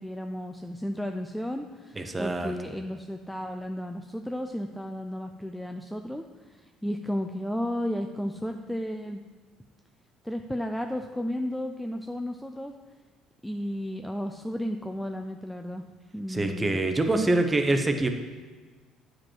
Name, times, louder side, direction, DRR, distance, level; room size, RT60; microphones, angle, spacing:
voice 1, 0.0-9.2 10.2-12.7 13.4-15.9 16.1-16.8, equal, 5° left, 5 dB, 0.4 m, -33 dB
voice 2, 2.0-2.5 16.3-18.1, right 2 dB, 15° right, 6 dB, 0.8 m, -25 dB
9.2 x 5.1 x 4.6 m, 1.4 s
cardioid pair, 120°, 0 cm